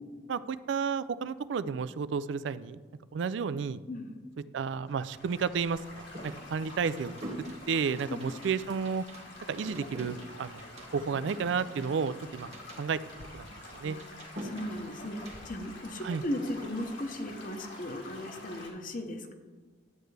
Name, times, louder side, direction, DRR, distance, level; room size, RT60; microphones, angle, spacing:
voice 1, 0.3-2.8 3.1-3.8 4.5-7.1 7.7-9.0 9.5-10.6 10.9-12.5 12.8-13.0 13.3-13.5 13.8-14.0 16.0-16.2, right 6 dB, 80° right, 16 dB, 0.4 m, -32 dB
Stream / Gurgling / Trickle dribble, 4.9-18.7, left 2 dB, 80° left, 2.0 m, -48 dB
sound 1, 5.7-15.4, right 1 dB, 35° right, 1.2 m, -46 dB
voice 2, 14.4-19.3, left 1 dB, 50° left, 6 dB, 0.9 m, -37 dB
11.0 x 7.9 x 3.3 m, 1.5 s
head